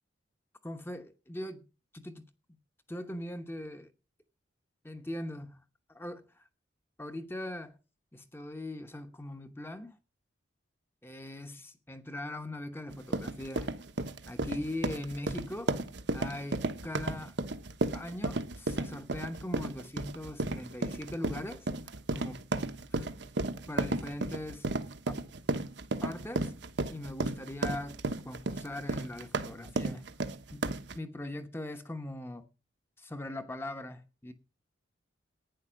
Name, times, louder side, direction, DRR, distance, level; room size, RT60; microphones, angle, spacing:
voice 1, 0.6-1.6 1.9-2.2 2.9-3.9 4.8-5.6 5.9-6.4 7.0-7.8 8.1-10.0 11.0-13.7 14.3-15.8 16.1-17.4 17.9-21.7 22.1-22.4 23.7-24.7 25.1-25.2 26.0-26.5 26.9-28.0 28.2-30.0 30.5-30.6 30.9-32.5 33.0-34.3, left 1 dB, 10° left, 1.0 m, -40 dB
sound 1, 12.9-31.0, right 2 dB, 70° right, 1.1 m, -33 dB
11.5 x 9.7 x 6.3 m
head